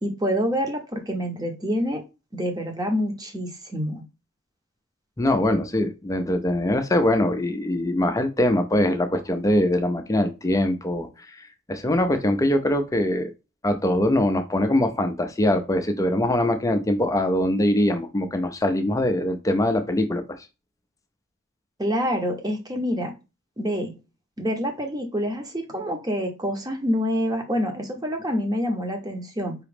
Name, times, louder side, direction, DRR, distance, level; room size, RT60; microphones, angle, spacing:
voice 1, 0.0-2.0 2.3-4.0 21.8-23.1 23.6-23.9 24.4-29.5, equal, 20° right, 4 dB, 0.9 m, -27 dB
voice 2, 5.2-13.3 13.6-20.2, left 1 dB, 15° left, 7 dB, 0.4 m, -22 dB
4.8 x 3.0 x 3.4 m, 0.27 s
head